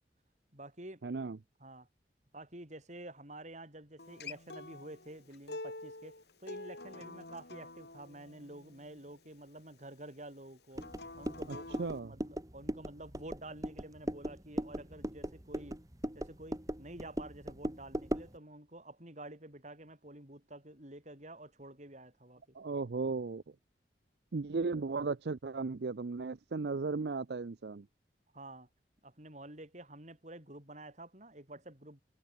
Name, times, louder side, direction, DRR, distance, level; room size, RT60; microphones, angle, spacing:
voice 1, 0.5-1.0 1.6-1.9 2.3-10.8 11.2-11.7 11.9-15.8 16.1-22.4 28.3-28.7 29.0-32.0, right 1 dB, 40° right, 6.7 m, -49 dB
voice 2, 1.0-1.4 11.5-12.1 22.5-23.4 24.3-27.9, right 4 dB, 65° right, 0.5 m, -36 dB
Acoustic guitar, 4.0-9.2 10.7-12.0, left 2 dB, 65° left, 4.2 m, -47 dB
sound 1, 10.8-18.4, equal, 20° right, 1.8 m, -39 dB
head